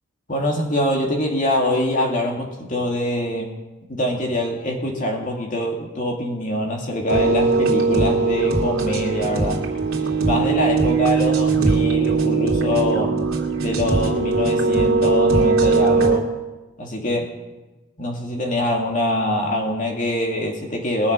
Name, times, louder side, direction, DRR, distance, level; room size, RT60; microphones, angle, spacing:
voice 1, 0.3-3.5 3.9-9.6 10.2-13.1 13.6-16.3 16.8-17.4 18.0-21.1, left 1 dB, 35° left, 0 dB, 2.4 m, -24 dB
sound 1, 7.1-16.2, right 3 dB, 80° right, 2.5 m, -20 dB
21.5 x 7.2 x 5.5 m, 1.1 s
head